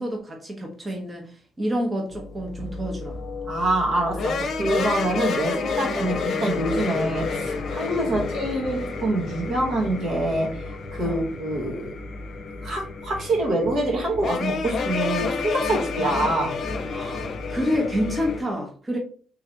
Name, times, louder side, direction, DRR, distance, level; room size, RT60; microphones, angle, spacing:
voice 1, 0.0-3.2 8.0-8.3 11.0-11.2 16.0-16.1 16.9-19.0, equal, 20° right, 1 dB, 0.9 m, -28 dB
sound 1, 2.1-18.4, left 4 dB, 60° left, 0.7 m, -30 dB
voice 2, 3.5-12.0 12.6-16.5, right 1 dB, 70° right, -1 dB, 1.6 m, -25 dB
3.5 x 3.2 x 2.9 m, 0.43 s
cardioid pair, 90°, 0 cm